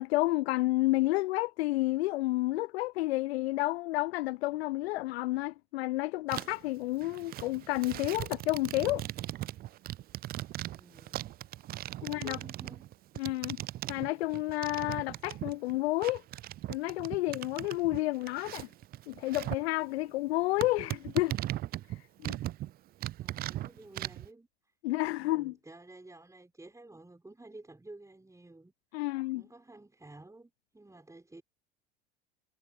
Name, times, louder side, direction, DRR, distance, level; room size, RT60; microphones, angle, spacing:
voice 1, 0.0-9.0 12.0-12.4 13.2-13.6 13.9-16.2 16.7-18.7 19.1-21.4 21.9-22.4 24.8-25.5 28.9-29.4, left 19 dB, 70° left, 0.6 m, -30 dB
sound 1, 6.3-6.7 7.0-15.8 16.0-19.7 20.0-20.1 20.6-22.7 23.0-24.3, right 14 dB, 30° right, 0.4 m, -39 dB
voice 2, 10.6-11.3 12.0-12.9 23.2-24.7 25.2-31.4, right 2 dB, 10° right, 5.8 m, -52 dB
hypercardioid pair, 75°, 33 cm